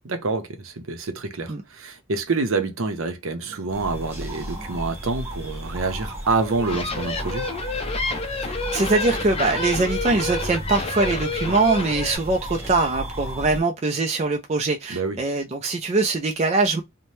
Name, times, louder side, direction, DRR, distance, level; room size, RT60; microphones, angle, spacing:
voice 1, 0.0-7.5 14.9-15.2, right 3 dB, 70° right, 0.7 m, -27 dB
sound 1, 3.7-13.6, equal, 10° right, 0.9 m, -34 dB
sound 2, 6.4-12.2, left 3 dB, 30° left, 0.5 m, -29 dB
voice 2, 8.4-16.8, right 3 dB, 30° right, 0.4 m, -22 dB
2.7 x 2.1 x 3.2 m
head